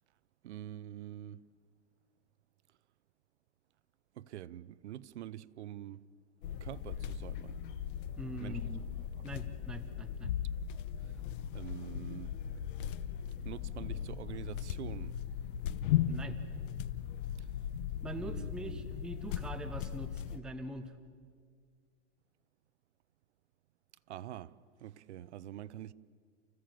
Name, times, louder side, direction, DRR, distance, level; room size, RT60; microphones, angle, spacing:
voice 1, 0.4-1.5 4.1-6.0 6.5-7.6 8.4-8.6 11.0-11.1 11.5-12.3 13.4-15.1 17.4-17.5 18.2-18.8 24.1-25.9, right 12 dB, 70° right, 0.8 m, -45 dB
sound 1, 6.4-20.4, left 10 dB, 45° left, 1.0 m, -37 dB
voice 2, 8.2-8.8 9.2-10.3 16.1-16.4 18.0-21.0, right 1 dB, ahead, 0.6 m, -43 dB
29.5 x 15.5 x 7.7 m
hypercardioid pair, 155°, 36 cm